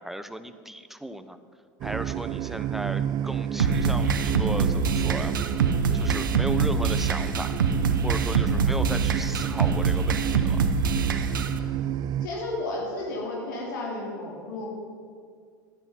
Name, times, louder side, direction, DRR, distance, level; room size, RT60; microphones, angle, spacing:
voice 1, 0.0-1.4 1.8-5.3 5.9-7.5 8.0-10.6, right 1 dB, ahead, 10 dB, 0.8 m, -36 dB
sound 1, 1.8-12.3, right 11 dB, 40° right, 0.4 m, -31 dB
sound 2, 3.6-11.6, right 5 dB, 85° right, 0.8 m, -25 dB
voice 2, 12.2-14.7, left 2 dB, 75° left, -3 dB, 3.3 m, -32 dB
13.5 x 10.0 x 5.8 m, 2.1 s
hypercardioid pair, 90°, 11 cm